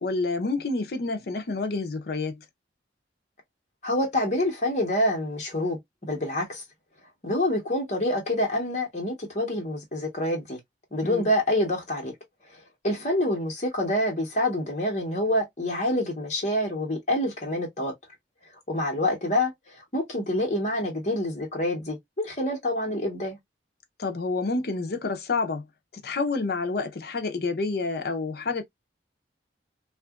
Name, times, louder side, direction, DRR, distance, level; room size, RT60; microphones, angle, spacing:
voice 1, 0.0-2.4 11.0-11.2 24.0-25.6 26.0-28.6, left 3 dB, 55° left, 0.5 m, -28 dB
voice 2, 3.8-6.6 7.2-10.6 10.9-12.1 12.5-17.9 18.7-23.4, left 1 dB, 40° left, 1.0 m, -27 dB
2.8 x 2.4 x 2.3 m
head